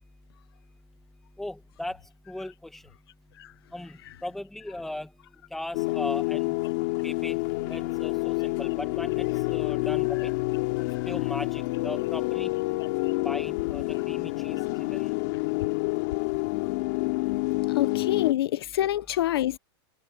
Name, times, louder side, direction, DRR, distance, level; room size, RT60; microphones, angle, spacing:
voice 1, 1.4-2.0 2.3-2.8 3.7-5.1 5.5-6.5 7.0-7.4 7.7-10.3 11.1-12.5 13.2-14.6 14.9-15.1, left 1 dB, ahead, 1.6 m, -38 dB
sound 1, 5.7-18.3, left 24 dB, 40° left, 3.4 m, -28 dB
voice 2, 17.7-19.6, left 13 dB, 65° left, 0.7 m, -27 dB
supercardioid pair, 175°, 14 cm